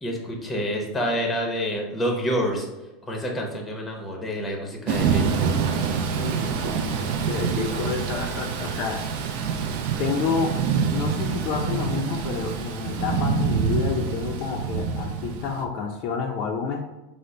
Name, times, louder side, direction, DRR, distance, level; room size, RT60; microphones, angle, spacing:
voice 1, 0.0-2.7 3.1-5.5, equal, 10° left, 1 dB, 0.7 m, -28 dB
Thunder / Rain, 4.9-15.6, right 6 dB, 60° right, 0.4 m, -26 dB
voice 2, 6.2-9.1 10.0-10.5 10.9-16.8, left 5 dB, 45° left, 2 dB, 0.4 m, -29 dB
5.1 x 2.0 x 4.3 m, 1.1 s
supercardioid pair, 160°, 0 cm